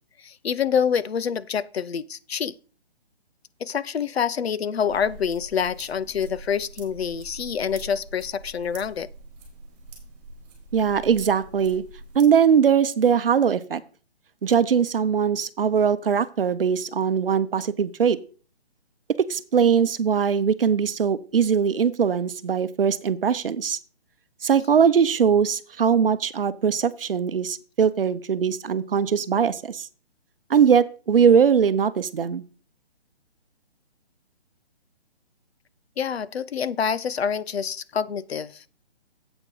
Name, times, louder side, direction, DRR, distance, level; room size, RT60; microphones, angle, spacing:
voice 1, 0.2-2.5 3.6-9.1 36.0-38.6, left 7 dB, 70° left, 0.7 m, -26 dB
sound 1, 4.9-12.2, right 1 dB, 15° right, 3.0 m, -44 dB
voice 2, 10.7-11.8 12.1-13.8 14.4-18.2 19.3-23.8 24.4-29.9 30.5-32.4, right 7 dB, 60° right, 0.8 m, -21 dB
8.9 x 8.0 x 3.9 m
hypercardioid pair, 175°, 32 cm